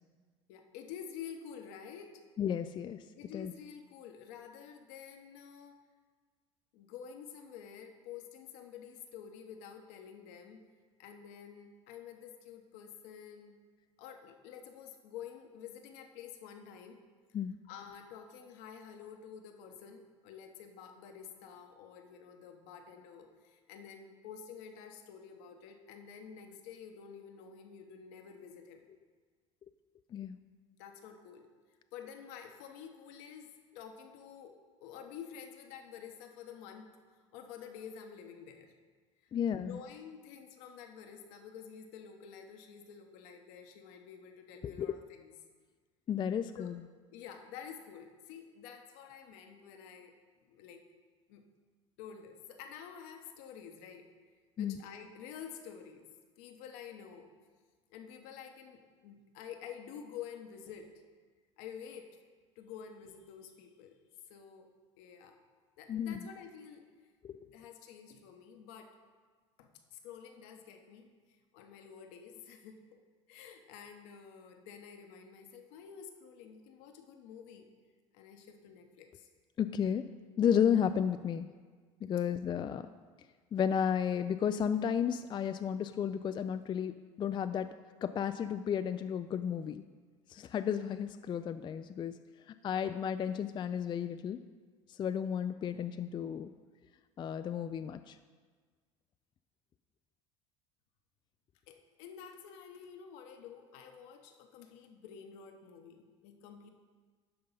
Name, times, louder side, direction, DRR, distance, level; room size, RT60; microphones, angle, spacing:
voice 1, 0.5-2.1 3.1-5.8 6.7-10.6 11.0-13.6 14.0-17.0 17.6-28.9 30.8-31.5 31.9-36.9 37.3-38.7 39.2-39.3 39.6-45.3 46.6-46.7 47.1-50.1 50.4-50.8 51.3-51.4 52.0-54.1 54.6-56.1 56.4-57.3 57.9-60.9 61.6-62.1 62.6-64.0 64.3-64.7 65.0-65.4 65.8-66.8 67.4-69.0 69.6-71.1 71.5-73.0 73.3-77.7 78.1-79.3 82.2-82.3 101.7-106.7, left 7 dB, 70° left, 4 dB, 1.0 m, -49 dB
voice 2, 2.4-3.0 3.3-3.5 17.3-17.6 30.1-30.4 39.3-39.8 44.6-44.9 46.1-46.7 54.6-54.8 65.9-66.2 67.2-67.3 79.6-80.0 80.4-81.5 82.0-82.9 83.5-87.7 88.0-89.8 90.3-92.1 92.6-94.4 95.0-96.5 97.2-98.2, left 8 dB, 30° left, 10 dB, 0.3 m, -33 dB
11.0 x 3.9 x 5.5 m, 1.5 s
hypercardioid pair, 75°, 16 cm